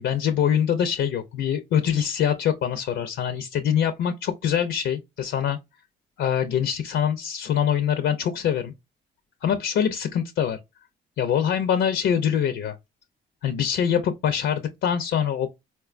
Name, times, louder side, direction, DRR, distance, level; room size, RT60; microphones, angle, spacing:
voice 1, 0.0-5.6 6.2-8.7 9.4-10.6 11.2-12.7 13.4-15.5, left 8 dB, 70° left, 0.5 m, -24 dB
4.2 x 2.2 x 2.4 m
cardioid pair, 90°, 20 cm